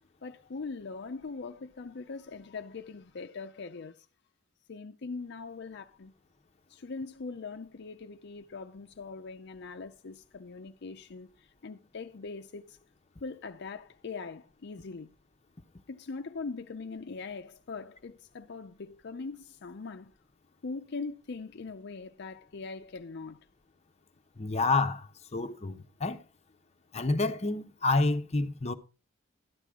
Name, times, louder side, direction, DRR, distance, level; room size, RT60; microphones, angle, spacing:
voice 1, 0.2-4.1 4.7-6.1 6.7-12.8 13.2-15.1 15.9-20.1 20.6-23.4, left 4 dB, 60° left, 0.6 m, -41 dB
voice 2, 24.4-25.1 25.3-26.2 26.9-28.7, left 3 dB, 35° left, 0.8 m, -28 dB
13.0 x 10.0 x 3.6 m
head